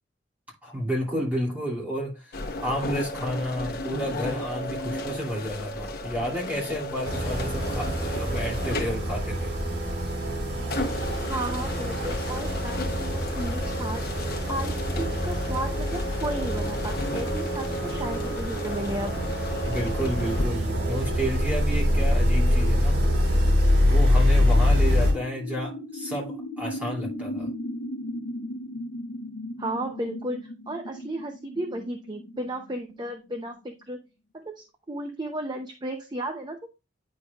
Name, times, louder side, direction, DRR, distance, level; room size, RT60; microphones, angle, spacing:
voice 1, 0.6-9.5 19.6-23.0 23.8-27.5, equal, 10° right, 2.7 m, -31 dB
sound 1, 2.3-20.5, left 1 dB, 55° left, 1.0 m, -34 dB
sound 2, 7.0-25.1, equal, 65° right, 3.6 m, -25 dB
voice 2, 11.3-19.1 29.6-34.0 34.3-36.7, right 1 dB, 25° right, 0.7 m, -34 dB
sound 3, 22.3-33.7, left 1 dB, 85° left, 0.6 m, -38 dB
9.5 x 5.3 x 2.4 m
head